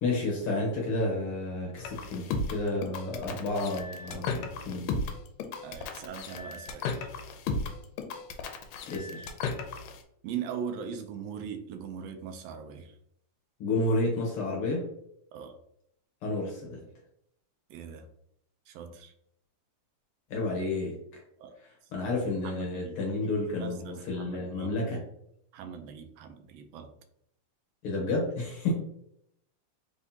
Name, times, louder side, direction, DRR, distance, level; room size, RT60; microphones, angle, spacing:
voice 1, 0.0-4.9 8.9-9.3 13.6-14.8 16.2-16.8 20.3-20.9 21.9-25.0 27.8-28.7, left 2 dB, 65° left, -1 dB, 1.5 m, -31 dB
sound 1, 1.8-10.0, left 4 dB, 80° left, 1.8 m, -35 dB
voice 2, 5.6-7.1 10.2-12.9 15.3-15.5 17.7-18.1 18.7-19.1 21.4-21.6 22.4-23.0 23.6-24.7 25.5-26.9, right 7 dB, 80° right, 7 dB, 1.5 m, -40 dB
4.5 x 3.5 x 2.7 m, 0.74 s
omnidirectional pair, 3.3 m